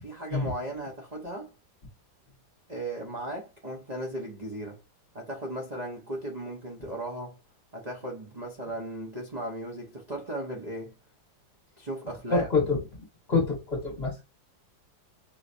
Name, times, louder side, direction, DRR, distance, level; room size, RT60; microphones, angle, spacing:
voice 1, 0.0-1.5 2.7-4.8 5.1-7.4 7.7-10.9 11.8-12.5, right 1 dB, 35° right, 0.7 m, -36 dB
voice 2, 12.3-14.2, left 3 dB, 35° left, 1.7 m, -27 dB
5.5 x 3.1 x 2.6 m
omnidirectional pair, 2.1 m